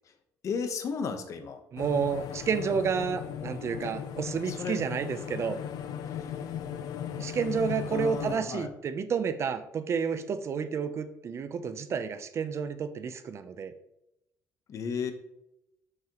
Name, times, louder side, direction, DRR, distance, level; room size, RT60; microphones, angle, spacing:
voice 1, 0.4-1.6 3.8-3.9 4.5-4.8 6.1-6.5 7.9-8.7 14.7-15.1, left 5 dB, 55° left, 8 dB, 0.9 m, -34 dB
voice 2, 1.7-5.6 7.2-13.7, right 6 dB, 45° right, 11 dB, 0.6 m, -30 dB
sound 1, 1.8-8.4, left 9 dB, 75° left, 0.6 m, -37 dB
6.9 x 6.4 x 2.9 m, 0.83 s
cardioid pair, 120°, 7 cm